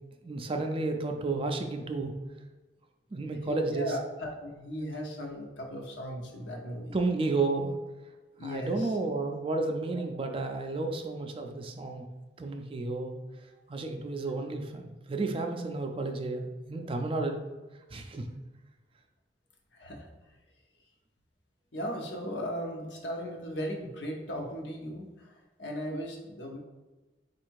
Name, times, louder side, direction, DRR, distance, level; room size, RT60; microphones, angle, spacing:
voice 1, 0.2-2.1 3.1-3.9 6.9-7.8 8.4-12.0 12.4-13.2 13.7-17.4 17.9-18.3, right 3 dB, 30° right, 4 dB, 0.4 m, -32 dB
voice 2, 3.5-6.9 8.4-9.1 9.9-10.0 19.7-20.1 21.7-26.6, equal, 70° left, 1 dB, 0.9 m, -37 dB
4.4 x 2.5 x 4.6 m, 1.2 s
head